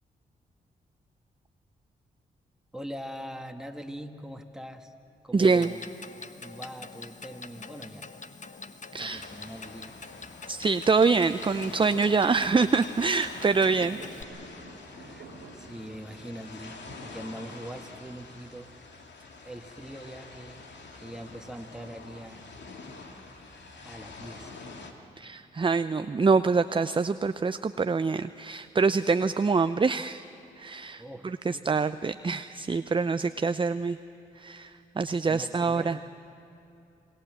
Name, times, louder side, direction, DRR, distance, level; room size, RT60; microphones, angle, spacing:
voice 1, 2.7-4.9 5.2-5.8 6.4-8.1 9.0-10.0 15.0-15.3 15.5-18.7 19.5-20.7 21.0-22.4 23.9-24.6 31.0-31.7 35.2-36.0, equal, 5° right, 4 dB, 2.0 m, -42 dB
voice 2, 5.3-5.7 8.9-9.3 10.5-14.0 25.2-30.2 30.6-34.0 34.4-36.0, right 4 dB, 25° right, 12 dB, 0.6 m, -25 dB
Clock, 5.4-14.2, left 4 dB, 40° left, 1.2 m, -45 dB
sound 1, 9.1-24.9, left 3 dB, 65° left, 2.3 m, -46 dB
Fireworks, 13.5-18.7, right 4 dB, 85° right, 2.1 m, -50 dB
27.5 x 19.0 x 7.7 m, 2.7 s
hypercardioid pair, 40°, 19 cm